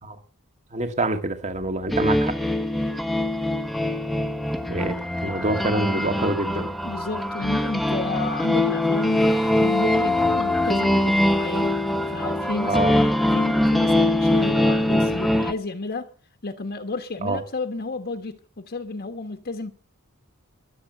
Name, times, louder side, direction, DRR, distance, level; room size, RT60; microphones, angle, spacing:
voice 1, 0.7-2.3 4.7-5.0 5.2-6.7 12.7-13.0 17.2-17.4, right 2 dB, 35° right, 1.9 m, -26 dB
sound 1, 1.9-15.5, left 1 dB, ahead, 1.1 m, -22 dB
voice 2, 5.8-6.2 6.8-11.7 12.1-16.1 16.4-19.7, left 3 dB, 45° left, 1.4 m, -32 dB
22.0 x 7.7 x 8.0 m
head